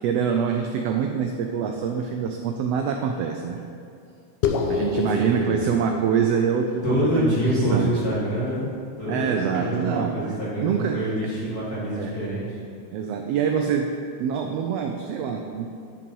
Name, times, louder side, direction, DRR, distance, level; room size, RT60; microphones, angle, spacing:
voice 1, 0.0-3.6 4.6-7.9 9.1-11.0 11.9-12.1 12.9-13.9 14.2-15.7, right 7 dB, 80° right, 4 dB, 1.4 m, -25 dB
sound 1, 4.4-9.2, left 5 dB, 75° left, 1.4 m, -30 dB
voice 2, 4.6-5.6 6.8-8.7 9.0-10.7 10.9-12.6, right 1 dB, 35° left, -8 dB, 2.3 m, -26 dB
9.9 x 5.6 x 5.3 m, 2.4 s
omnidirectional pair, 3.3 m